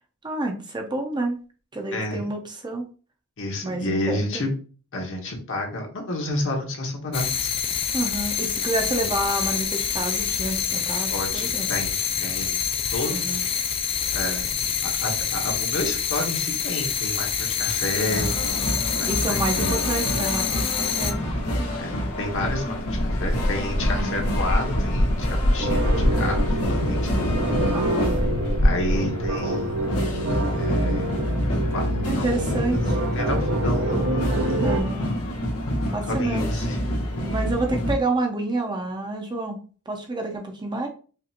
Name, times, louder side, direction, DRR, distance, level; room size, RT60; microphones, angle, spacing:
voice 1, 0.2-1.4 1.7-2.9 3.6-4.4 7.9-11.7 13.1-13.4 18.0-18.3 19.1-21.7 23.9-24.3 27.7-28.2 32.1-33.0 34.6-35.2 35.9-36.6 37.2-39.6 39.9-40.9, right 2 dB, 20° right, 3 dB, 0.6 m, -29 dB
voice 2, 1.9-2.2 3.4-4.5 4.9-7.5 9.0-9.1 11.1-11.9 12.2-13.3 14.1-14.5 14.8-18.3 19.0-19.9 21.8-27.3 28.6-29.9 30.5-31.1 31.7-31.9 32.2-32.7 33.1-34.0 36.1-36.8, left 1 dB, 60° left, 1 dB, 1.1 m, -30 dB
sound 1, 7.1-21.1, left 8 dB, 25° left, 0.3 m, -26 dB
sound 2, 18.1-37.9, equal, 85° left, 1.3 m, -26 dB
sound 3, 25.6-34.8, right 1 dB, 65° right, 0.7 m, -27 dB
5.0 x 2.5 x 2.8 m, 0.38 s
head